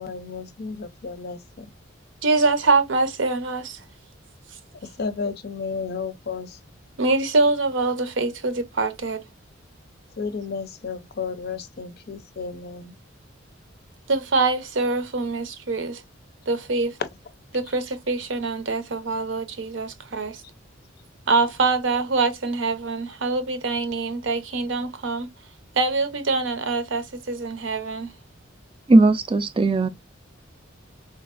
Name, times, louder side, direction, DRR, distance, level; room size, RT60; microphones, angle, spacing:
voice 1, 0.0-1.7 5.0-6.6 10.2-13.0 17.0-17.1, left 5 dB, 50° left, 0.5 m, -32 dB
voice 2, 2.2-3.8 7.0-9.2 14.1-16.0 16.5-17.0 17.5-20.4 21.3-25.3 25.7-28.1, right 3 dB, 70° right, 0.6 m, -24 dB
voice 3, 28.9-29.9, right 2 dB, 25° right, 0.3 m, -17 dB
3.8 x 2.5 x 2.4 m
head